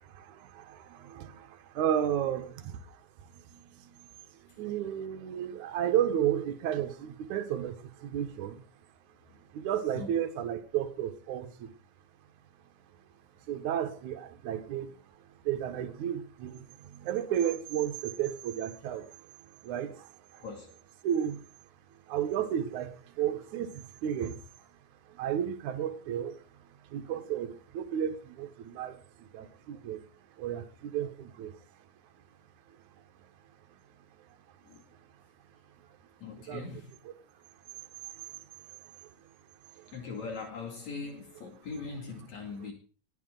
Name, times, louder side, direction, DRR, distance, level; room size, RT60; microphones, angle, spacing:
voice 1, 0.0-3.0 3.3-3.9 4.6-8.6 9.5-11.7 13.5-14.9 15.4-19.2 19.6-20.4 21.0-21.4 22.1-24.4 25.1-26.5 26.9-30.0 30.4-31.6 36.5-36.8 39.8-39.9, right 10 dB, 70° right, 2.6 m, -33 dB
voice 2, 36.2-36.8 39.9-42.7, left 4 dB, 60° left, 3.7 m, -40 dB
20.0 x 13.0 x 3.9 m
omnidirectional pair, 3.7 m